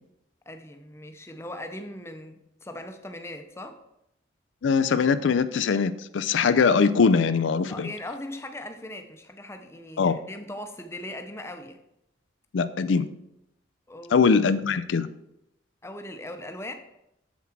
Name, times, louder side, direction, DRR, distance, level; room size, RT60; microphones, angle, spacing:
voice 1, 0.5-3.8 7.7-11.8 13.9-14.2 15.8-16.7, left 1 dB, 15° left, 6 dB, 0.7 m, -39 dB
voice 2, 4.6-7.9 10.0-10.2 12.5-13.1 14.1-15.1, left 5 dB, 80° left, 13 dB, 0.4 m, -22 dB
7.3 x 7.2 x 4.4 m, 0.83 s
head